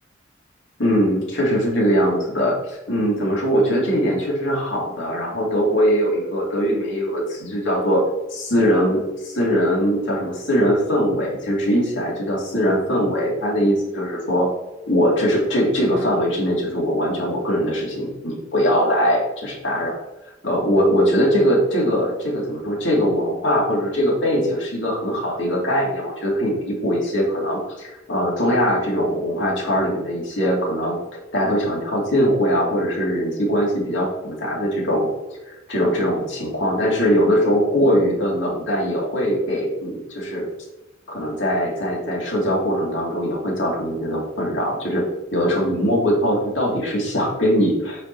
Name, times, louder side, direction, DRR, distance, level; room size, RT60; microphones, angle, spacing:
voice 1, 0.8-8.0 8.3-14.5 14.9-19.9 20.4-31.0 31.3-35.1 35.5-40.4 41.1-45.0 45.3-48.0, equal, 85° left, -3 dB, 2.4 m, -21 dB
8.4 x 5.3 x 2.8 m, 1.0 s
head